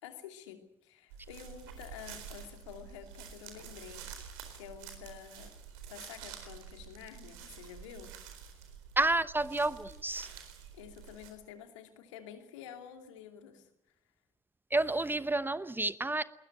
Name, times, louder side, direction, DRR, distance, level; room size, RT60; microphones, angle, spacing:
voice 1, 0.0-5.5 5.9-8.2 10.7-13.7, left 9 dB, 70° left, 6 dB, 2.6 m, -49 dB
sound 1, 1.1-11.3, right 7 dB, 65° right, 4.3 m, -49 dB
voice 2, 9.0-10.3 14.7-16.2, right 2 dB, 10° right, 16 dB, 1.0 m, -30 dB
21.5 x 20.5 x 9.1 m, 0.83 s
figure-of-eight pair, 50°, 16 cm